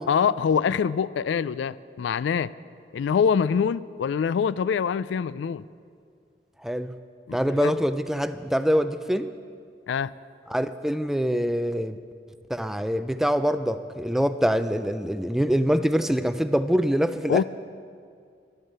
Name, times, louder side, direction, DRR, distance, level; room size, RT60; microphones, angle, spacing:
voice 1, 0.0-2.5 2.9-5.6 7.3-7.7 9.9-10.1 17.3-17.4, left 7 dB, 80° left, 18 dB, 0.3 m, -24 dB
voice 2, 6.6-7.0 7.3-9.3 10.5-12.0 12.5-17.4, equal, ahead, 11 dB, 0.3 m, -24 dB
12.0 x 11.0 x 6.7 m, 2.2 s
head